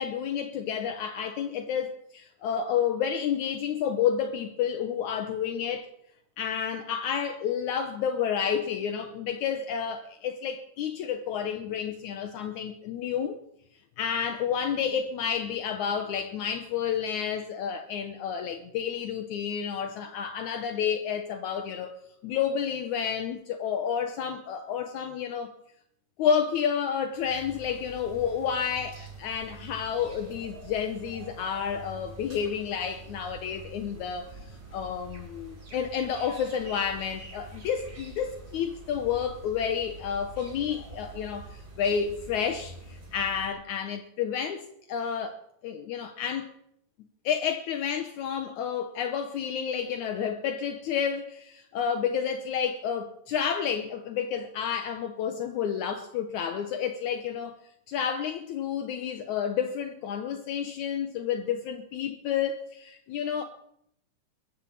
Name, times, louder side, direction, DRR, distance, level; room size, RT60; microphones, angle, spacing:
voice 1, 0.0-5.9 6.4-13.4 14.0-22.0 22.2-25.5 26.2-34.3 34.7-44.6 44.9-46.5 47.2-57.6 57.9-63.4, left 8 dB, 80° left, 1.7 m, -30 dB
sound 1, 27.1-43.5, right 3 dB, 30° right, 4.4 m, -46 dB
21.5 x 7.4 x 8.5 m
omnidirectional pair, 4.6 m